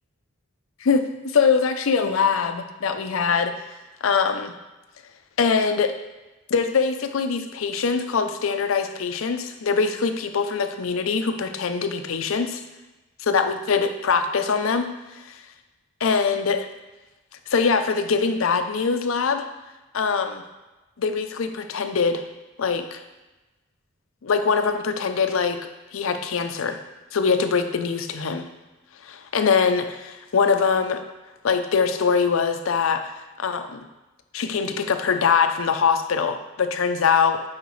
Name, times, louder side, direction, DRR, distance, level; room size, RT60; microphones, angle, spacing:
voice 1, 0.8-3.5 4.0-4.5 5.4-5.9 6.5-12.6 13.3-14.9 15.3-15.4 16.0-16.7 17.5-19.4 19.9-20.4 21.0-22.2 22.6-23.0 24.2-25.6 25.9-26.8 27.1-28.5 29.0-31.0 31.4-33.1 33.4-33.8 34.3-37.5, left 5 dB, 85° left, 8 dB, 0.5 m, -23 dB
6.8 x 4.9 x 3.2 m, 1.1 s
head